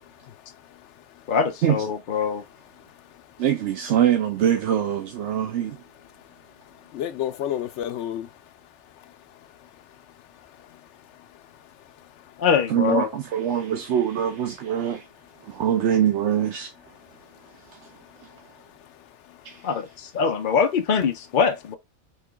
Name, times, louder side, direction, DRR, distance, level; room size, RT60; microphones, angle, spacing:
voice 1, 0.0-1.3 2.7-3.4 6.1-12.4 15.4-15.6 17.0-19.2, left 10 dB, 85° left, 0.9 m, -38 dB
voice 2, 1.3-2.4 12.4-13.1 19.6-19.8 20.1-21.8, left 6 dB, 55° left, 0.7 m, -23 dB
voice 3, 3.4-5.8 12.7-15.1 15.4-16.7 17.7-17.9 18.2-18.3, right 10 dB, 80° right, 1.0 m, -23 dB
4.5 x 2.9 x 3.4 m
omnidirectional pair, 1.2 m